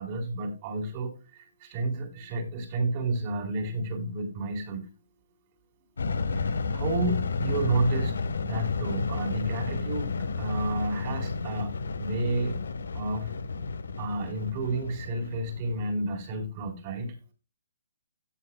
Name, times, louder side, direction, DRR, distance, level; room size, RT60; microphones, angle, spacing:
voice 1, 0.0-4.9 6.5-8.2 8.4-11.7 12.0-12.7 12.9-13.3 14.0-17.1, right 2 dB, 35° right, 3 dB, 3.7 m, -31 dB
sound 1, 6.0-16.2, left 4 dB, 85° left, 1.1 m, -31 dB
17.0 x 7.1 x 2.2 m, 0.29 s
hypercardioid pair, 150°, 0 cm